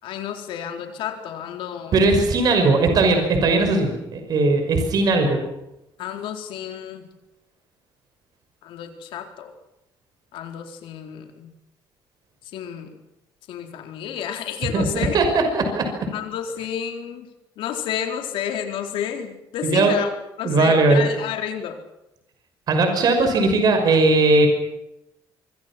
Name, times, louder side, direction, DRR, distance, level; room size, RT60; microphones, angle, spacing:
voice 1, 0.0-2.0 6.0-7.1 8.6-9.5 10.3-11.5 12.5-13.0 13.5-15.2 16.1-17.3 17.6-20.1 20.4-21.8, left 9 dB, 85° left, 4 dB, 4.3 m, -30 dB
voice 2, 1.9-5.4 14.7-14.9 15.1-15.9 19.6-19.9 20.4-21.0 22.7-24.5, right 3 dB, 50° right, 5 dB, 5.8 m, -18 dB
25.5 x 24.5 x 6.2 m, 0.88 s
cardioid pair, 160°, 9 cm